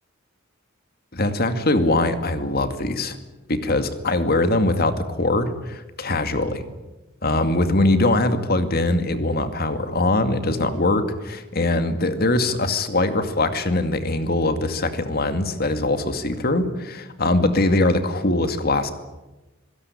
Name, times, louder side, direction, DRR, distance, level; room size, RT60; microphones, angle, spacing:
voice 1, 1.1-3.2 3.5-6.6 7.2-18.9, left 2 dB, 50° left, 9 dB, 2.3 m, -22 dB
26.0 x 17.5 x 9.8 m, 1.1 s
head